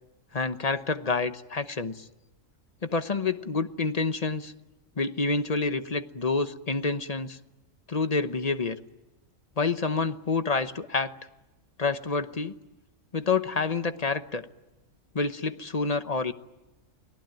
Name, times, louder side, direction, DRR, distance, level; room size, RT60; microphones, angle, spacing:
voice 1, 0.3-2.1 2.8-4.5 5.0-7.4 7.9-8.8 9.6-11.1 11.8-12.5 13.1-14.5 15.1-16.3, left 4 dB, 35° left, 10 dB, 1.1 m, -28 dB
29.0 x 19.5 x 9.1 m, 1.1 s
omnidirectional pair, 1.3 m